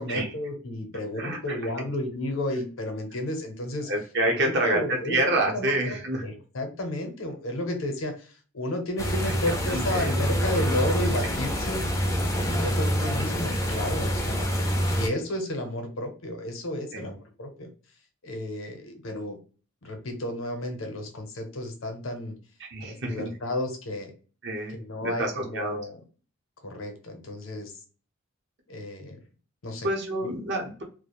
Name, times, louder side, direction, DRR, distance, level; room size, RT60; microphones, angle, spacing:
voice 1, 0.0-3.9 4.3-11.9 12.4-17.7 18.2-19.4 19.8-22.3 22.9-24.1 24.8-26.0 26.6-27.7 28.7-29.2 29.6-29.9 30.2-30.3, left 1 dB, 70° left, 5 dB, 0.7 m, -32 dB
voice 2, 1.2-1.9 3.9-6.2 9.5-10.2 11.2-11.3 12.6-12.7 16.9-17.1 22.6-23.3 24.4-25.8 29.8-30.8, right 1 dB, 55° right, 1 dB, 0.8 m, -28 dB
sound 1, 9.0-15.1, equal, 15° left, 0.4 m, -26 dB
2.4 x 2.1 x 2.9 m, 0.38 s
head